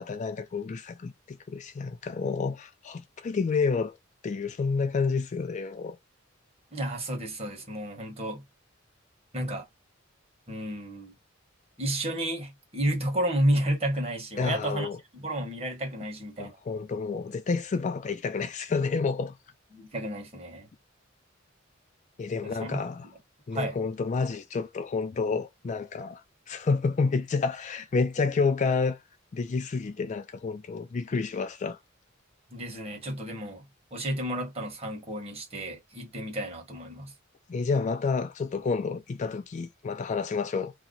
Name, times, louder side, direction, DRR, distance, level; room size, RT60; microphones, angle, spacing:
voice 1, 0.0-4.0 4.2-6.0 14.4-15.0 16.4-19.3 22.2-23.1 23.5-26.2 26.5-29.0 29.3-31.8 37.5-40.7, left 4 dB, 35° left, 0.3 m, -29 dB
voice 2, 6.7-8.4 9.3-9.7 10.5-11.1 11.8-14.9 15.1-16.5 19.7-20.7 22.4-22.8 23.5-23.8 32.5-33.7 33.9-37.1, right 1 dB, 30° right, 1.3 m, -31 dB
2.9 x 2.2 x 3.8 m
head